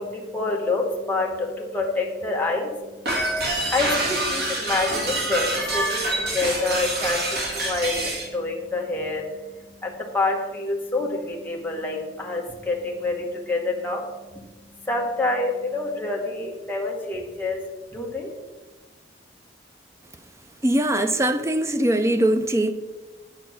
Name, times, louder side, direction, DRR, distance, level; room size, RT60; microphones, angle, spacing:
voice 1, 0.0-17.6 17.9-18.3, left 2 dB, 10° left, 1.2 m, -27 dB
sound 1, 3.1-8.3, right 2 dB, 55° right, 2.3 m, -26 dB
voice 2, 20.6-22.7, right 1 dB, 15° right, 0.5 m, -21 dB
9.0 x 5.2 x 6.2 m
head